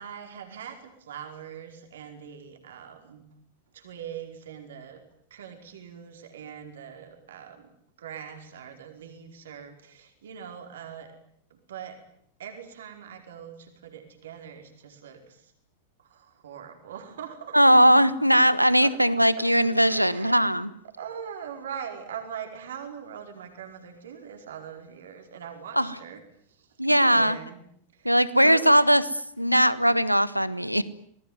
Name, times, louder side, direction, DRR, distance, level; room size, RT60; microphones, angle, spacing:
voice 1, 0.0-3.3 3.7-5.0 5.3-7.7 8.0-11.2 11.5-12.0 12.4-15.5 16.0-17.8 18.3-18.4 18.8-19.5 19.8-20.6 20.8-26.2 26.5-27.6 27.9-28.7 30.4-30.8, right 8 dB, 60° right, 5 dB, 4.9 m, -42 dB
voice 2, 17.5-20.7 25.8-25.9 26.8-27.4 28.0-29.0 29.4-30.8, equal, 90° right, 17 dB, 1.4 m, -19 dB
27.5 x 20.5 x 9.6 m, 0.67 s
figure-of-eight pair, 90°, 0 cm